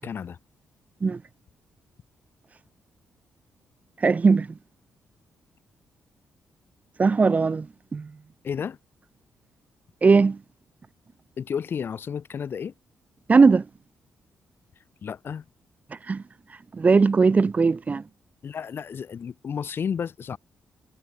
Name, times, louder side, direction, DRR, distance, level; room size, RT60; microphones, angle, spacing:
voice 1, 0.0-0.4 8.4-8.8 11.4-12.7 15.0-15.4 18.4-20.4, left 7 dB, 55° left, 5.9 m, -32 dB
voice 2, 4.0-4.5 7.0-8.1 10.0-10.4 13.3-13.6 16.1-16.2 16.7-18.0, right 4 dB, 35° right, 1.0 m, -19 dB
cardioid pair, 75°, 4 cm